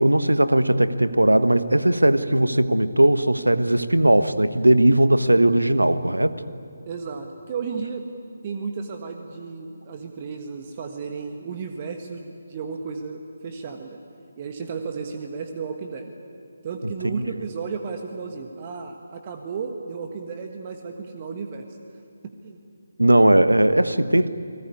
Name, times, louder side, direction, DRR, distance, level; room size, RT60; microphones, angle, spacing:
voice 1, 0.0-6.4 17.1-17.3 23.0-24.3, right 1 dB, 80° right, 13 dB, 1.2 m, -18 dB
voice 2, 6.9-8.1 8.4-14.0 14.4-16.1 16.6-21.6 22.2-22.6, right 5 dB, 30° right, 5 dB, 1.5 m, -33 dB
29.5 x 19.5 x 9.7 m, 2.4 s
figure-of-eight pair, 150°, 0 cm